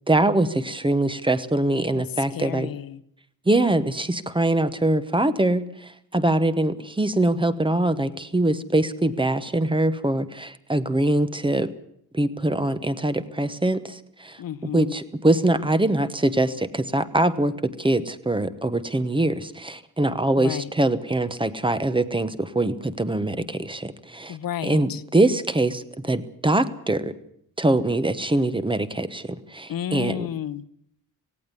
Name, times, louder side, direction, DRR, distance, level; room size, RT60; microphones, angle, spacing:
voice 1, 0.1-2.7 3.5-11.7 12.1-14.4 14.7-24.4 24.6-27.1 27.6-30.3, right 1 dB, 15° right, 13 dB, 1.0 m, -23 dB
voice 2, 1.9-3.0 14.4-14.9 20.4-20.7 24.3-25.0 29.7-30.7, left 10 dB, 70° left, 15 dB, 0.9 m, -32 dB
18.0 x 17.0 x 9.7 m, 0.70 s
wide cardioid pair, 155°, 36 cm